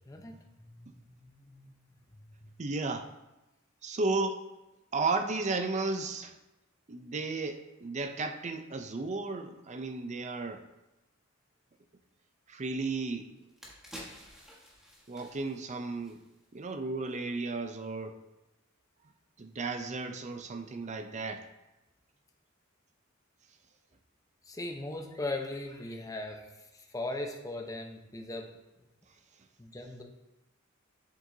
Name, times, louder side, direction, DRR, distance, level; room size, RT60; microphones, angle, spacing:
voice 1, 0.1-1.7 2.1-2.5 24.5-28.5 29.6-30.0, left 2 dB, 15° left, 3 dB, 0.8 m, -39 dB
voice 2, 2.6-3.1 3.8-4.4 4.9-6.3 6.9-10.6 12.5-13.3 15.1-16.2 16.5-18.2 19.4-21.5, right 3 dB, 35° right, 7 dB, 0.5 m, -34 dB
sound 1, 12.9-13.0 13.4-16.7 17.0-17.1, equal, ahead, 1.4 m, -50 dB
7.5 x 7.5 x 2.7 m, 0.99 s
head